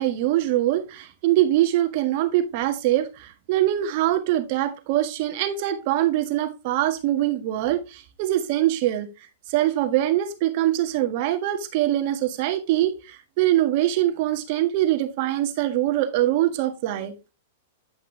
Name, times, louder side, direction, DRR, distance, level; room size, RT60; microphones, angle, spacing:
voice 1, 0.0-9.1 9.5-17.1, right 13 dB, 50° right, 1.6 m, -23 dB
9.9 x 5.8 x 2.8 m
hypercardioid pair, 110°, 0 cm